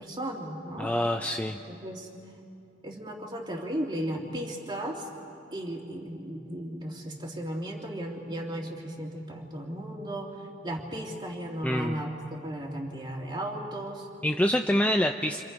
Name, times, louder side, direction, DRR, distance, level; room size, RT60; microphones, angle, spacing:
voice 1, 0.0-0.9 1.7-2.1 2.8-5.0 5.5-10.3 10.6-14.1, right 1 dB, 25° right, 0 dB, 2.7 m, -35 dB
voice 2, 0.8-1.6 11.6-12.0 14.2-15.4, equal, 10° left, 4 dB, 0.5 m, -26 dB
29.0 x 27.0 x 5.3 m, 2.6 s
head